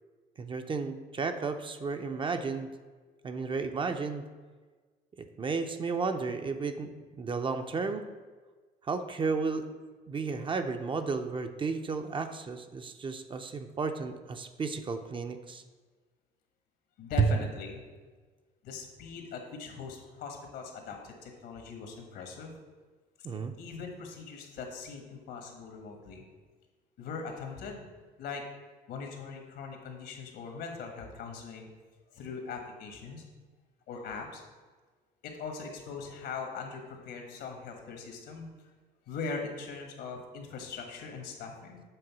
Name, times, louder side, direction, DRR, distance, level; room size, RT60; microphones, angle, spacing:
voice 1, 0.4-2.7 3.2-4.2 5.2-6.9 7.2-8.0 8.8-9.6 10.1-15.6 17.2-17.3 23.2-23.5, right 4 dB, 30° right, 7 dB, 0.6 m, -32 dB
voice 2, 17.0-17.8 18.6-22.6 23.6-26.2 27.0-27.8 28.2-28.5 28.9-31.7 32.1-33.2 33.9-34.4 35.2-38.5 39.1-41.8, left 5 dB, 80° left, 3 dB, 1.6 m, -41 dB
7.8 x 3.6 x 6.0 m, 1.4 s
cardioid pair, 110°, 17 cm